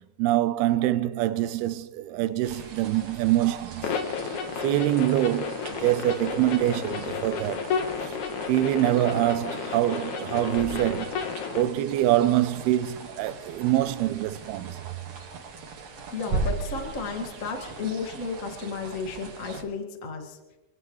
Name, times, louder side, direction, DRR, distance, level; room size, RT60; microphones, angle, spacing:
voice 1, 0.0-4.0 4.6-7.7 8.0-8.1 8.5-11.1 11.5-14.9, right 14 dB, 90° right, 2.6 m, -25 dB
sound 1, 2.4-19.6, right 4 dB, 50° right, 2.6 m, -39 dB
sound 2, 3.8-11.6, left 6 dB, 60° left, 2.3 m, -32 dB
voice 2, 16.0-20.4, left 4 dB, 35° left, 1.4 m, -33 dB
26.0 x 16.5 x 3.2 m
omnidirectional pair, 4.4 m